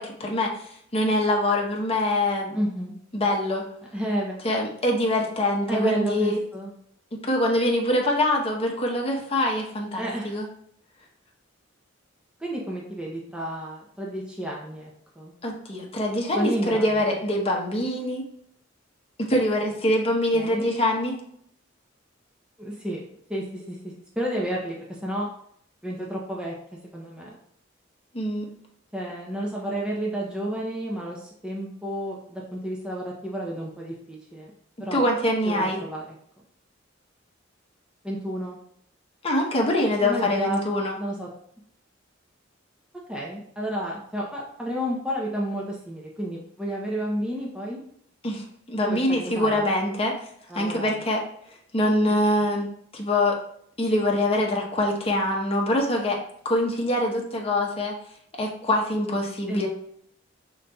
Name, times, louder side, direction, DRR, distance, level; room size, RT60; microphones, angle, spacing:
voice 1, 0.0-2.6 3.1-3.6 4.4-6.4 7.2-10.5 15.4-18.2 19.2-21.2 28.1-28.5 34.9-35.8 39.2-41.0 48.2-50.1 50.5-51.2 51.7-53.4 53.8-56.2 56.4-58.0 58.4-59.7, left 1 dB, 30° left, 0 dB, 0.8 m, -24 dB
voice 2, 2.5-3.0 3.9-4.3 5.7-6.7 9.9-10.4 12.4-15.3 16.4-17.1 20.3-20.7 22.6-23.0 23.3-25.3 25.8-26.6 26.9-27.4 28.9-34.5 34.8-35.1 35.4-36.2 38.0-38.6 40.0-40.6 41.0-41.3 43.1-47.8 48.8-49.7 50.5-51.0 52.0-52.1 59.5-59.7, right 1 dB, 5° right, -4 dB, 0.6 m, -31 dB
5.0 x 3.9 x 2.3 m, 0.68 s
head